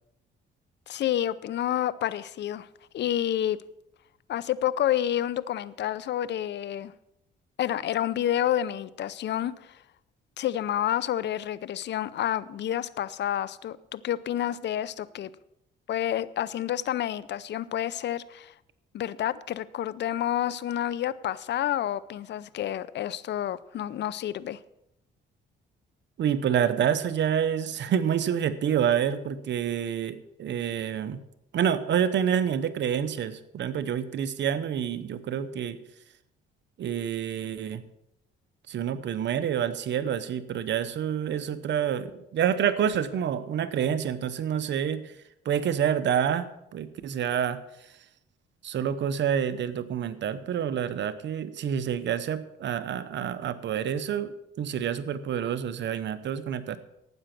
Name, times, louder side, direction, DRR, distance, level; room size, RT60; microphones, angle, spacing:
voice 1, 0.9-2.7 2.9-3.6 4.3-6.9 7.6-9.8 10.4-15.3 15.9-18.5 18.9-24.6, left 11 dB, 60° left, 18 dB, 0.6 m, -29 dB
voice 2, 26.2-31.2 31.5-35.8 36.8-37.8 38.7-45.0 45.4-47.6 48.6-56.8, right 8 dB, 65° right, 13 dB, 0.9 m, -28 dB
12.0 x 9.0 x 6.0 m, 0.82 s
cardioid pair, 90°, 20 cm